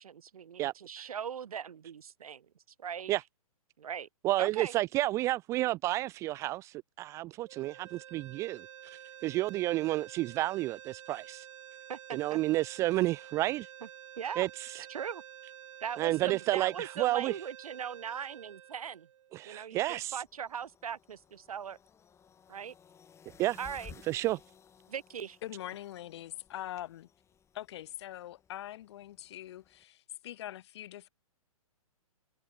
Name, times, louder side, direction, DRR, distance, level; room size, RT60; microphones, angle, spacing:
voice 1, 0.0-2.5 2.8-3.1 3.8-4.1 4.4-4.7 11.9-12.4 14.2-14.5 14.8-15.2 15.8-19.1 19.4-21.8 22.5-22.7 23.6-23.9 24.9-25.4, right 8 dB, 70° right, 0.6 m, -40 dB
voice 2, 0.6-1.1 3.1-3.2 4.2-11.5 12.1-13.7 14.4-14.5 14.7-14.9 16.0-17.3 19.3-20.2 23.4-23.6 24.1-24.4, right 17 dB, 15° right, 0.3 m, -31 dB
sound 1, 7.5-19.7, right 11 dB, 55° right, 2.4 m, -50 dB
sound 2, 19.8-29.8, left 7 dB, 15° left, 4.2 m, -58 dB
voice 3, 25.4-27.1 27.5-31.1, left 13 dB, 45° left, 0.7 m, -43 dB
figure-of-eight pair, 120°, 19 cm